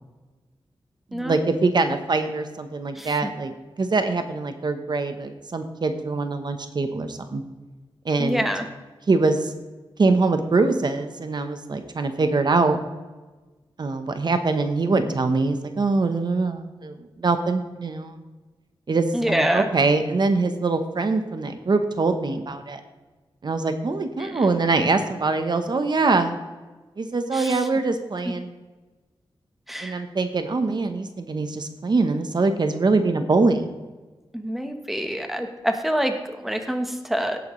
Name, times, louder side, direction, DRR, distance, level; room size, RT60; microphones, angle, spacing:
voice 1, 1.1-3.5 3.8-7.4 8.0-8.4 9.1-9.5 10.0-12.8 13.8-18.2 18.9-22.8 23.4-26.4 27.0-28.5 29.8-33.8, right 3 dB, 50° right, 8 dB, 0.9 m, -23 dB
voice 2, 8.2-8.7 19.1-19.7 24.2-24.5 27.3-27.6 29.7-30.0 34.3-37.4, equal, ahead, 6 dB, 1.1 m, -26 dB
17.0 x 9.2 x 3.2 m, 1.2 s
wide cardioid pair, 125°, 9 cm